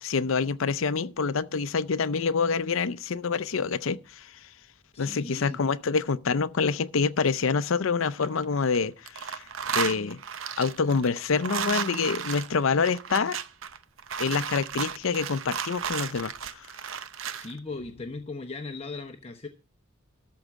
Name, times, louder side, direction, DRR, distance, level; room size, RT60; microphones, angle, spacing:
voice 1, 0.0-4.3 5.0-10.2 10.6-13.4 14.2-16.7, left 5 dB, 75° left, 0.6 m, -27 dB
voice 2, 4.9-5.6 17.3-19.5, left 3 dB, 30° left, 0.9 m, -38 dB
sound 1, 8.0-8.8 9.1-17.5, right 7 dB, 70° right, 0.7 m, -34 dB
13.0 x 4.7 x 7.3 m
head